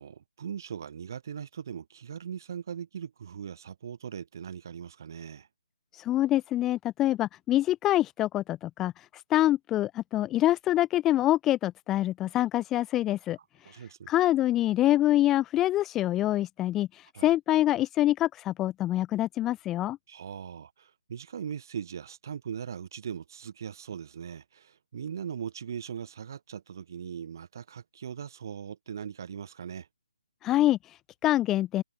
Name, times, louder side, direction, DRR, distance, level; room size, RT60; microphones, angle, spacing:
voice 1, 0.0-5.5 13.6-14.1 17.1-17.3 20.1-29.9, right 8 dB, 30° right, 4.9 m, -40 dB
voice 2, 5.9-20.0 30.4-31.8, left 14 dB, 5° left, 0.3 m, -26 dB
figure-of-eight pair, 170°, 4 cm